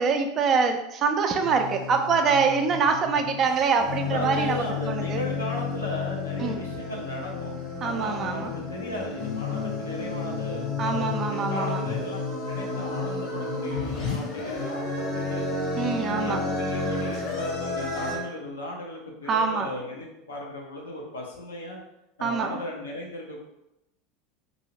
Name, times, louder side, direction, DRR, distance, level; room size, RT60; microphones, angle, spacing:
voice 1, 0.0-5.2 6.4-6.6 7.8-8.5 10.8-11.8 15.8-16.4 19.3-19.7 22.2-22.5, right 5 dB, 40° right, 5 dB, 0.4 m, -25 dB
sound 1, 1.4-18.2, left 4 dB, 50° left, 0.9 m, -31 dB
voice 2, 4.0-12.2 12.5-14.8 15.1-15.5 16.1-21.8 22.2-23.4, left 1 dB, 80° left, -2 dB, 0.6 m, -36 dB
2.7 x 2.6 x 2.9 m, 0.88 s
figure-of-eight pair, 75°, 0 cm